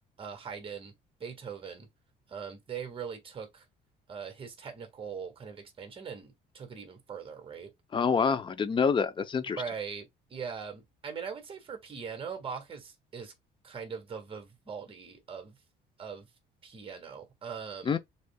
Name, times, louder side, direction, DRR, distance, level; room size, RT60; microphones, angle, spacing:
voice 1, 0.2-0.9 1.2-1.9 2.3-3.7 4.1-7.7 9.5-13.3 13.6-15.6 16.0-16.3 16.6-18.0, right 6 dB, 35° right, 1.7 m, -41 dB
voice 2, 7.9-9.6 17.9-18.0, left 6 dB, 30° left, 0.6 m, -27 dB
6.5 x 3.2 x 2.3 m
cardioid pair, 110°, 17 cm